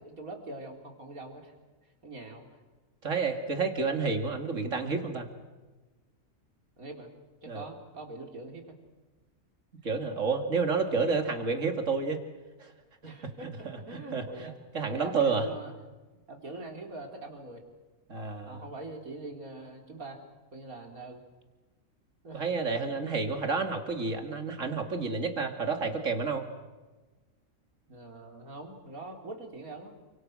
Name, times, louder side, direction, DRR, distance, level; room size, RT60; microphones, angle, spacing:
voice 1, 0.0-1.5 2.0-2.6 6.8-7.1 7.4-8.7 13.0-14.6 14.9-15.7 16.1-17.6 18.5-20.2 20.5-21.2 22.2-22.5 22.9-23.2 27.9-30.0, right 2 dB, 75° right, 3 dB, 4.3 m, -43 dB
voice 2, 3.0-5.3 7.5-7.6 9.8-12.2 12.6-12.7 13.6-15.5 18.1-18.6 22.3-26.4, right 4 dB, 60° right, 5 dB, 2.9 m, -30 dB
29.0 x 26.5 x 6.4 m, 1.2 s
omnidirectional pair, 1.5 m